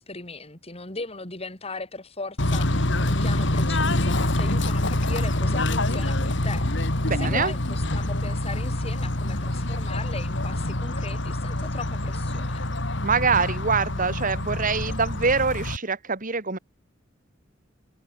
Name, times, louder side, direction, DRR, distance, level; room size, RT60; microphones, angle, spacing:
voice 1, 0.0-12.7, left 3 dB, 30° left, 5.2 m, -38 dB
Bird / Train, 2.4-15.8, left 1 dB, 65° left, 3.0 m, -26 dB
voice 2, 7.1-7.5 13.0-16.6, right 5 dB, 45° right, 2.1 m, -24 dB
head